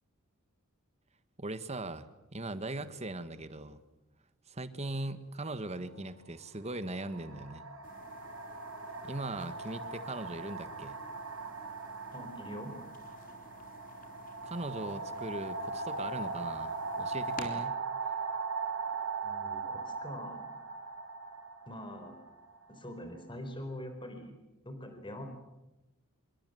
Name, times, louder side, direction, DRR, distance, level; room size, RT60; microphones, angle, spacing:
voice 1, 1.4-3.8 4.5-7.6 9.0-10.9 14.4-17.8, right 2 dB, 30° right, 11 dB, 1.7 m, -39 dB
sound 1, 5.6-5.7 6.5-23.2, right 4 dB, 70° right, 5.4 m, -39 dB
sound 2, 7.8-17.5, left 2 dB, 40° left, 3.8 m, -53 dB
voice 2, 12.1-12.7 19.2-20.4 21.7-22.2 22.7-25.3, left 1 dB, 25° left, 7 dB, 4.3 m, -44 dB
27.0 x 23.5 x 7.9 m, 0.97 s
head